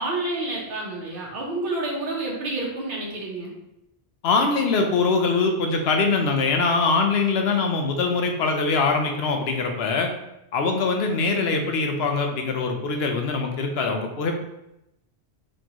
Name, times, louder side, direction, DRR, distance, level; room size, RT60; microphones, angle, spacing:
voice 1, 0.0-3.5, right 2 dB, 55° right, -2 dB, 1.1 m, -29 dB
voice 2, 4.2-10.1 10.5-14.4, left 4 dB, 70° left, 4 dB, 0.8 m, -23 dB
4.2 x 3.1 x 2.9 m, 0.86 s
omnidirectional pair, 1.2 m